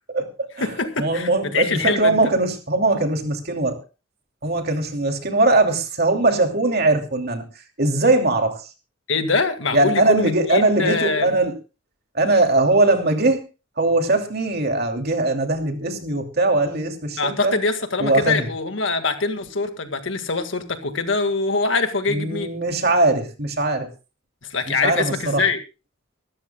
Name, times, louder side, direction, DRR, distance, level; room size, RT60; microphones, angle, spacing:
voice 1, 0.1-3.8 4.4-8.7 9.7-11.5 12.1-13.4 13.8-17.6 18.0-18.5 22.1-23.9 24.7-25.4, right 2 dB, 50° right, 4 dB, 2.8 m, -20 dB
voice 2, 0.6-2.2 9.1-11.3 17.2-22.5 24.5-25.6, left 4 dB, 70° left, 7 dB, 1.9 m, -23 dB
24.5 x 13.5 x 2.3 m, 0.30 s
head